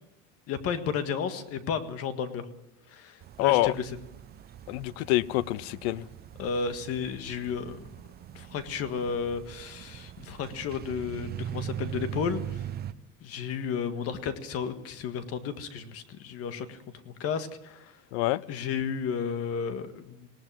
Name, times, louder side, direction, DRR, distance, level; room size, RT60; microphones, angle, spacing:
voice 1, 0.5-2.5 2.9-3.9 6.4-7.9 8.3-12.6 13.2-17.9 18.5-20.3, left 6 dB, 45° left, 1.8 m, -33 dB
sound 1, 3.2-12.9, right 11 dB, 30° right, 0.8 m, -41 dB
voice 2, 3.4-3.7 4.7-6.0 18.1-18.4, left 18 dB, 75° left, 0.7 m, -26 dB
19.5 x 18.0 x 7.6 m
cardioid pair, 145°, 33 cm